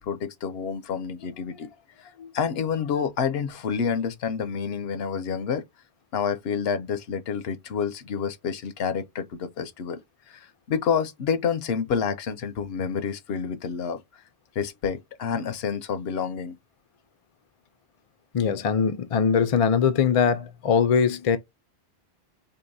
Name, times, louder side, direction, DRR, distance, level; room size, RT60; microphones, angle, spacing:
voice 1, 0.0-1.7 2.0-5.6 6.1-10.0 10.3-14.0 14.6-16.6, left 6 dB, 70° left, 0.8 m, -28 dB
voice 2, 18.3-21.4, left 6 dB, 45° left, 0.4 m, -21 dB
4.5 x 2.8 x 2.6 m
omnidirectional pair, 1.1 m